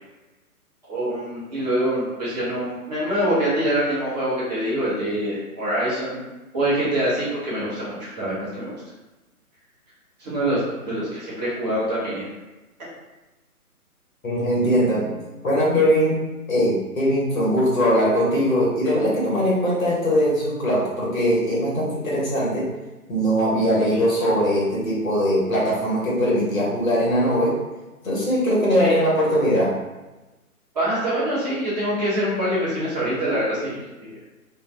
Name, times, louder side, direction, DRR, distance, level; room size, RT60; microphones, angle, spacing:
voice 1, 0.9-6.2 6.5-8.7 10.2-12.3 28.8-29.0 30.7-34.2, right 1 dB, 30° right, -9 dB, 1.0 m, -25 dB
voice 2, 14.2-16.2 16.5-22.6 23.1-27.6 28.0-29.7, equal, 60° left, -5 dB, 1.3 m, -21 dB
2.5 x 2.1 x 3.3 m, 1.1 s
figure-of-eight pair, 140°, 45 cm